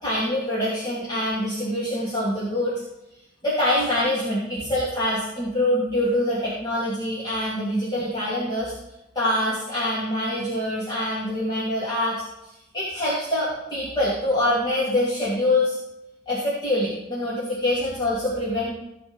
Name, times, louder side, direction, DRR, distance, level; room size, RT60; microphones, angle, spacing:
voice 1, 0.0-2.8 3.4-8.7 9.1-12.2 12.7-15.8 16.3-18.7, left 1 dB, 25° left, -9 dB, 2.8 m, -25 dB
15.5 x 5.2 x 5.4 m, 0.89 s
head